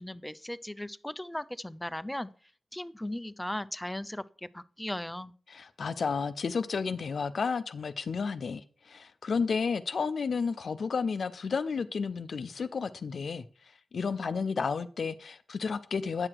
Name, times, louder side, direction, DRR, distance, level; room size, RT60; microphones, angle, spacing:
voice 1, 0.0-2.3 2.7-5.3, left 1 dB, 10° left, 0.5 m, -37 dB
voice 2, 5.5-13.4 13.9-16.3, left 5 dB, 70° left, 0.5 m, -32 dB
8.8 x 5.9 x 4.6 m
cardioid pair, 75°, 0 cm